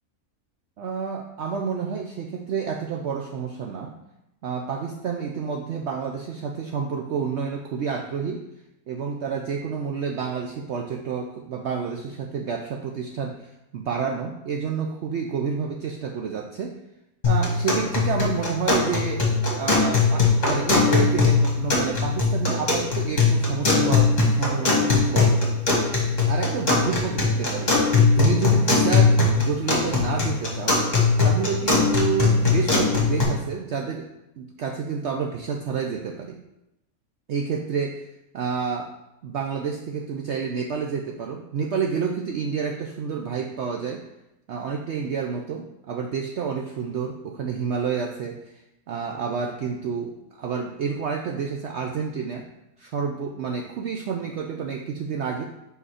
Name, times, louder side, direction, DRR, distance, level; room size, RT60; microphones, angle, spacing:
voice 1, 0.8-4.0 4.4-8.5 8.9-16.8 17.3-19.3 19.6-25.4 26.3-30.8 31.2-34.1 34.4-36.4 37.3-38.1 38.3-38.9 39.2-44.0 44.5-48.4 48.9-52.5 52.8-55.4, right 6 dB, 65° right, 2 dB, 0.7 m, -29 dB
sound 1, 17.2-33.2, left 4 dB, 30° left, 1.6 m, -20 dB
5.1 x 4.9 x 4.8 m, 0.89 s
omnidirectional pair, 1.5 m